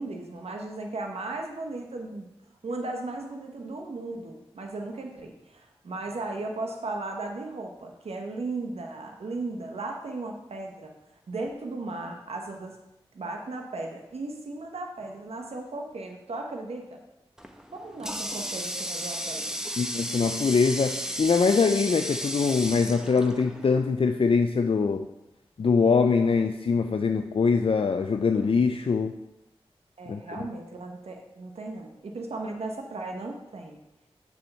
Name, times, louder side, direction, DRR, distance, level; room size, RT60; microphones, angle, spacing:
voice 1, 0.0-2.3 2.6-10.9 11.3-12.8 13.1-17.0 17.7-19.6 30.0-33.8, right 2 dB, 80° right, 2 dB, 1.1 m, -36 dB
Water tap faucet, 17.4-23.9, equal, 5° right, 1.0 m, -34 dB
voice 2, 19.8-25.1 25.6-29.1 30.1-30.4, left 5 dB, 60° left, 6 dB, 0.5 m, -23 dB
6.9 x 4.8 x 6.8 m, 0.92 s
cardioid pair, 40°, 10 cm